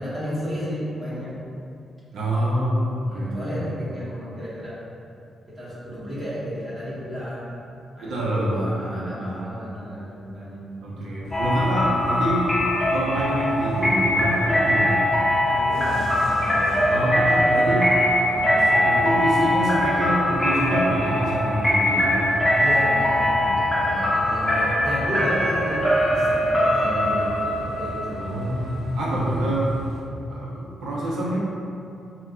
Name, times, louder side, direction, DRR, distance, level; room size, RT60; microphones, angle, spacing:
voice 1, 0.0-1.4 3.0-4.8 5.5-7.5 7.9-11.3 15.5-17.8 18.2-19.0 22.6-28.5, equal, 15° right, -10 dB, 1.1 m, -33 dB
voice 2, 2.1-3.7 8.0-9.7 10.8-12.5 12.9-15.0 16.9-17.9 18.8-22.3 28.2-29.8 30.3-31.4, right 1 dB, 75° right, -5 dB, 0.6 m, -26 dB
sound 1, 11.2-30.0, left 1 dB, 65° left, 0.4 m, -37 dB
sound 2, 11.3-28.9, left 1 dB, 10° left, 0.7 m, -22 dB
4.3 x 2.2 x 3.7 m, 2.6 s
wide cardioid pair, 175°, 0 cm